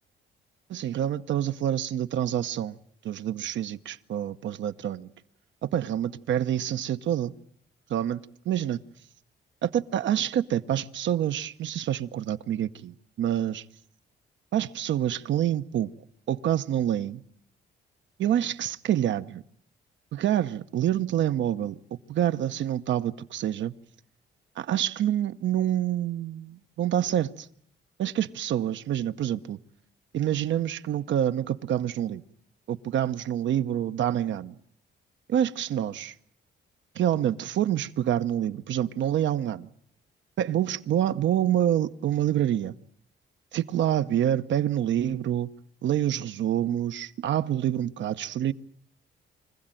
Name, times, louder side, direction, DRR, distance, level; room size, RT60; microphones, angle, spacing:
voice 1, 0.7-2.8 3.0-5.1 5.6-7.3 7.9-8.8 9.6-13.6 14.5-15.9 16.3-17.2 18.2-19.4 20.1-21.8 22.1-23.7 24.6-27.5 28.0-29.6 30.1-32.2 32.7-34.5 35.3-36.1 36.9-39.7 40.4-42.7 43.5-45.5 45.8-48.5, right 11 dB, 70° right, 0.9 m, -27 dB
25.0 x 15.5 x 9.0 m
cardioid pair, 90°, 20 cm